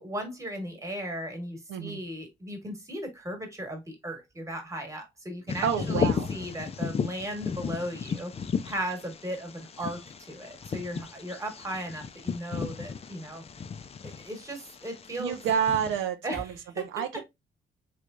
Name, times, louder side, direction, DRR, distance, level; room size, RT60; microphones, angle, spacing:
voice 1, 0.0-8.3 8.6-13.4 14.0-15.4 16.2-16.8, right 1 dB, 15° right, 1.3 m, -36 dB
voice 2, 1.7-2.0 5.6-6.3 15.2-16.5 16.9-17.2, right 8 dB, 85° right, 0.5 m, -28 dB
Bird vocalization bird call bird song, 5.5-16.0, left 6 dB, 30° left, 0.4 m, -34 dB
3.2 x 3.1 x 2.4 m
cardioid pair, 90°, 20 cm